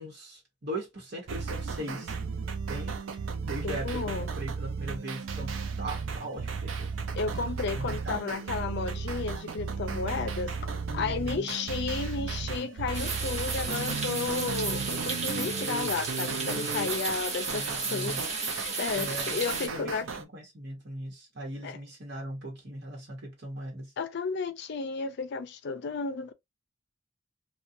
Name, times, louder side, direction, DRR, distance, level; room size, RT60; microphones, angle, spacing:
voice 1, 0.0-2.1 2.7-3.0 3.4-6.9 7.7-8.2 10.9-11.5 17.5-18.2 18.9-19.9 20.2-23.9, right 1 dB, 55° right, 1.1 m, -39 dB
sound 1, 1.3-20.2, right 5 dB, 80° right, 0.5 m, -35 dB
voice 2, 3.6-4.3 7.1-18.2 18.4-20.1 21.6-21.8 24.0-26.3, left 4 dB, 60° left, 0.4 m, -33 dB
sound 2, 12.9-19.7, right 4 dB, 35° right, 0.8 m, -33 dB
2.4 x 2.3 x 2.7 m
head